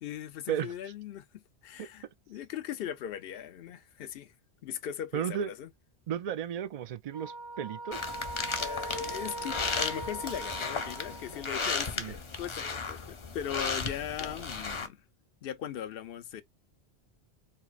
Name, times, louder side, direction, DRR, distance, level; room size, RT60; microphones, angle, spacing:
voice 1, 0.0-4.3 4.6-5.7 8.6-15.0 15.4-16.4, left 10 dB, 65° left, 0.8 m, -39 dB
voice 2, 5.1-5.5 6.1-8.1 12.0-12.1, right 9 dB, 55° right, 0.4 m, -34 dB
sound 1, 7.1-11.5, right 2 dB, 85° right, 1.8 m, -40 dB
sound 2, 7.9-14.9, left 4 dB, 35° left, 0.7 m, -35 dB
4.6 x 2.8 x 2.4 m
omnidirectional pair, 1.1 m